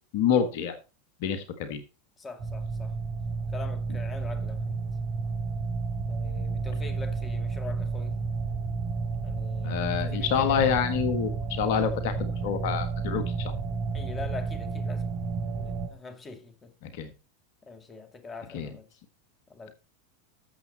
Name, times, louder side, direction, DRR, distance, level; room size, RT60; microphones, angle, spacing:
voice 1, 0.1-0.8 1.2-1.8 9.6-13.5 16.8-17.1 18.5-18.7, left 8 dB, 60° left, 1.5 m, -27 dB
voice 2, 2.2-3.0 3.5-4.8 6.1-8.2 9.2-10.8 13.9-15.1 15.5-16.7 17.6-18.9 19.5-19.7, left 4 dB, 25° left, 2.2 m, -43 dB
sound 1, 2.4-15.9, right 4 dB, 50° right, 4.3 m, -31 dB
13.0 x 7.3 x 4.1 m
hypercardioid pair, 90°, 0 cm